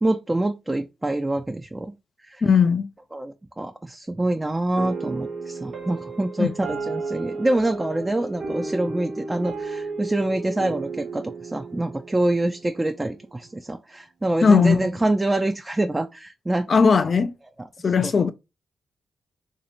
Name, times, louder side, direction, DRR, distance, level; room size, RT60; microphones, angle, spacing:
voice 1, 0.0-1.9 2.2-2.4 3.1-16.7 17.8-18.1, right 1 dB, 20° right, 0.4 m, -26 dB
voice 2, 2.4-2.9 6.4-6.5 14.4-14.8 16.7-17.3 17.8-18.3, left 5 dB, 55° left, 0.3 m, -17 dB
sound 1, 4.7-13.3, right 3 dB, 60° right, 0.9 m, -34 dB
3.1 x 2.6 x 2.9 m
supercardioid pair, 45°, 0 cm